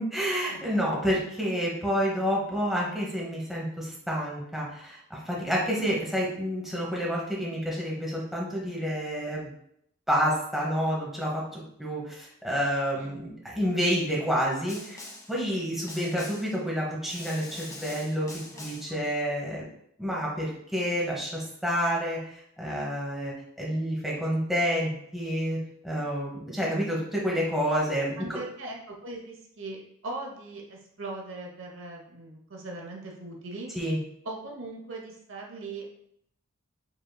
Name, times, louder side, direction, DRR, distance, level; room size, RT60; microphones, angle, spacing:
voice 1, 0.0-9.5 10.1-15.0 15.3-18.3 18.6-19.6 20.0-25.6 25.8-28.4 33.7-34.0, equal, ahead, -4 dB, 0.9 m, -29 dB
Snare drum, 14.7-15.4 15.9-16.6 17.1-19.0, left 2 dB, 15° left, 0.4 m, -43 dB
voice 2, 18.5-19.1 28.2-33.7 34.2-35.9, right 2 dB, 70° right, 0 dB, 0.8 m, -40 dB
5.3 x 3.6 x 2.2 m, 0.72 s
head